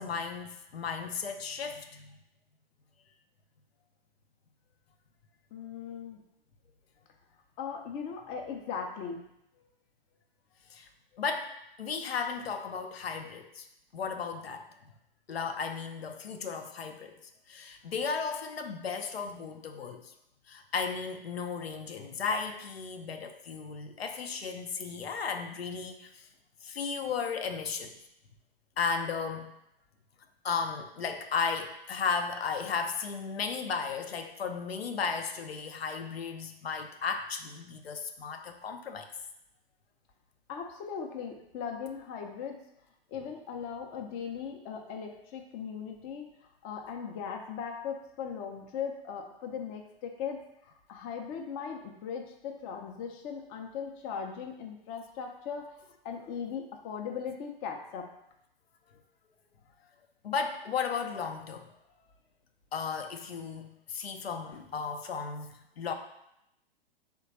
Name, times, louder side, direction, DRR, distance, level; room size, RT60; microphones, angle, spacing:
voice 1, 0.0-2.2 10.7-10.9 11.2-11.5 11.8-13.7 13.9-14.7 15.3-17.1 17.5-20.1 20.5-26.3 26.6-27.9 28.8-29.5 30.4-39.1 60.2-61.7 62.7-65.9, left 5 dB, 85° left, 5 dB, 0.5 m, -35 dB
voice 2, 5.5-6.2 7.6-9.2 40.5-42.6 43.1-46.3 46.6-58.1, left 6 dB, 25° left, 2 dB, 0.5 m, -39 dB
3.4 x 2.2 x 3.9 m, 0.80 s
figure-of-eight pair, 110°, 30 cm